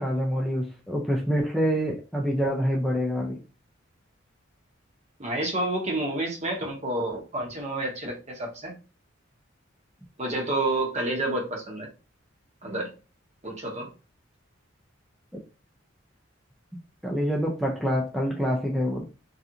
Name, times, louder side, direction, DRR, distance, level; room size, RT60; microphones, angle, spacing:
voice 1, 0.0-3.4 15.3-15.4 17.0-19.0, equal, ahead, -1 dB, 0.3 m, -26 dB
voice 2, 5.2-8.8 10.2-11.9 12.6-12.9 13.4-13.9, right 2 dB, 35° right, 0 dB, 0.8 m, -29 dB
2.4 x 2.4 x 2.7 m, 0.32 s
head